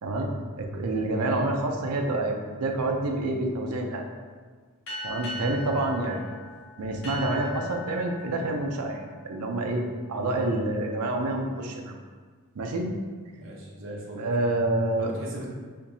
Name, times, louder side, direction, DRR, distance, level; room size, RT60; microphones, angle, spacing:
voice 1, 0.6-4.1 5.0-6.2 6.8-9.8 10.1-12.0 12.6-12.9 14.2-15.1, right 2 dB, 85° right, 2 dB, 0.5 m, -28 dB
sound 1, 4.9-9.9, left 1 dB, 65° left, 1.2 m, -40 dB
voice 2, 13.3-14.3 15.0-15.5, right 1 dB, 60° right, -3 dB, 0.8 m, -39 dB
4.3 x 3.0 x 2.7 m, 1.5 s
head